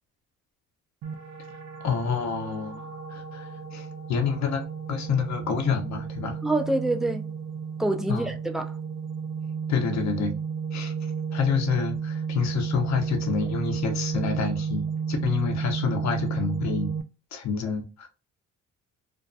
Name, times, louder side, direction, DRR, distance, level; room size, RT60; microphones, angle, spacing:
sound 1, 1.0-17.0, right 6 dB, 70° right, 0.5 m, -32 dB
voice 1, 1.8-6.4 8.1-8.3 9.7-10.4 10.7-10.9 11.3-16.9 17.3-18.1, left 6 dB, 65° left, 0.7 m, -28 dB
voice 2, 6.4-7.3 7.8-8.8, right 2 dB, ahead, 0.3 m, -26 dB
2.6 x 2.2 x 2.5 m
cardioid pair, 90°, 30 cm